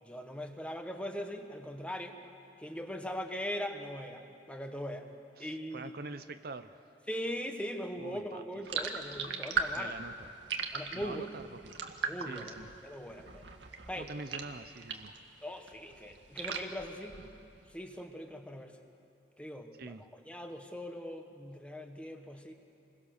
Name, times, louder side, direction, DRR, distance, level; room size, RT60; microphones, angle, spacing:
voice 1, 0.0-2.2 2.6-5.0 5.4-6.0 7.1-10.0 10.7-11.3 12.1-12.6 12.8-13.4 13.9-14.1 15.4-17.2 17.7-18.7 19.4-22.5, equal, 5° left, 4 dB, 1.5 m, -40 dB
voice 2, 5.4-6.8 8.0-8.6 9.8-10.3 10.9-11.7 12.3-12.7 14.0-15.1 19.8-20.0, right 3 dB, 60° right, 10 dB, 0.8 m, -45 dB
sound 1, 8.7-15.2 15.6-17.6, right 5 dB, 90° right, 1.8 m, -38 dB
29.5 x 22.5 x 6.7 m, 2.6 s
head